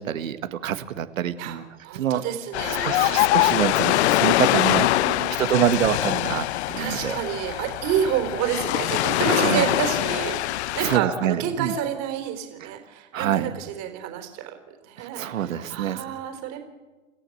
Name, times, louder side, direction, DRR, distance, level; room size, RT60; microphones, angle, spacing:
voice 1, 0.0-1.6 1.9-2.2 2.7-6.5 6.7-7.2 9.2-9.7 10.8-11.7 12.6-12.7 13.1-13.5 15.0-16.0, right 9 dB, 80° right, 10 dB, 1.7 m, -26 dB
voice 2, 1.8-3.3 5.0-5.3 6.8-14.5 14.8-16.6, right 9 dB, 40° right, 6 dB, 3.9 m, -29 dB
Ocean, 2.5-11.0, left 16 dB, 55° left, 0.8 m, -23 dB
28.0 x 14.5 x 7.9 m, 1.3 s
hypercardioid pair, 120°, 39 cm